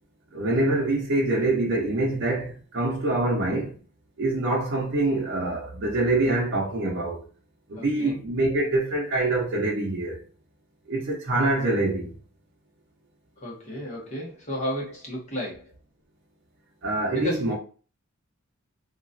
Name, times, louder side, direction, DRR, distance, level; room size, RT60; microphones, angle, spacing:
voice 1, 0.3-3.8 4.2-7.3 7.7-10.2 10.9-12.1 16.8-17.5, right 2 dB, 60° right, 0.8 m, -25 dB
voice 2, 7.8-8.1 13.4-15.7 17.1-17.5, equal, 35° left, 1.2 m, -33 dB
2.9 x 2.4 x 2.5 m
head